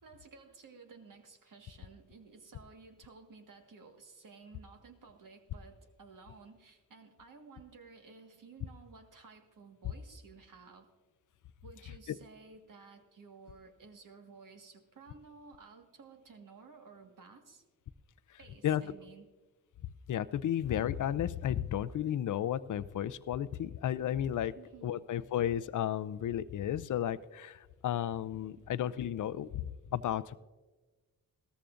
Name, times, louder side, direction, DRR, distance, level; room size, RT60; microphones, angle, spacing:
voice 1, 0.0-10.9 11.6-17.6 18.4-19.3 24.6-25.0 28.6-28.7, right 4 dB, 55° right, 5 dB, 1.7 m, -55 dB
voice 2, 20.1-24.5 24.8-30.4, left 10 dB, 55° left, 16 dB, 0.6 m, -33 dB
17.5 x 14.0 x 2.5 m, 1.3 s
supercardioid pair, 55°, 38 cm